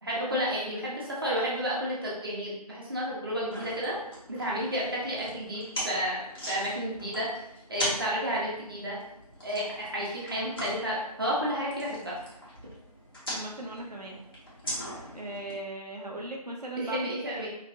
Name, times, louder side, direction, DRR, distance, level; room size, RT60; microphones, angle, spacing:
voice 1, 0.0-3.9 4.3-7.3 7.7-9.0 9.4-12.1 16.7-17.5, equal, 35° right, -5 dB, 1.2 m, -31 dB
sound 1, 3.5-15.5, equal, 35° left, 1.7 m, -40 dB
voice 2, 13.3-14.2 15.1-17.0 17.4-17.5, right 2 dB, 80° right, 0 dB, 1.0 m, -38 dB
5.5 x 3.4 x 2.7 m, 0.83 s
figure-of-eight pair, 175°, 20 cm